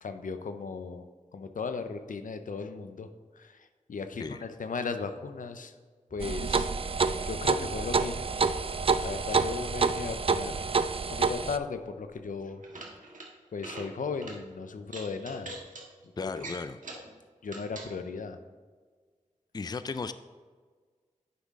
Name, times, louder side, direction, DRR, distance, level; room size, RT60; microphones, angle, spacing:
voice 1, 0.0-3.1 3.3-5.7 6.1-6.7 7.1-8.6 9.0-10.7 11.1-12.6 13.5-15.6 16.2-16.5 17.4-18.4, left 4 dB, 85° left, 8 dB, 0.6 m, -37 dB
sound 1, 6.1-12.4, right 1 dB, 20° right, 1.2 m, -51 dB
sound 2, 6.2-11.6, right 4 dB, 45° right, 0.4 m, -28 dB
sound 3, 12.5-13.3 13.6-13.9 14.2-14.4 14.9-15.8 16.4-17.1 17.5-17.9, right 2 dB, 80° right, 1.4 m, -43 dB
voice 2, 16.2-16.8 19.5-20.1, left 4 dB, 30° left, 12 dB, 0.3 m, -35 dB
9.6 x 5.6 x 3.7 m, 1.5 s
wide cardioid pair, 60°, 13 cm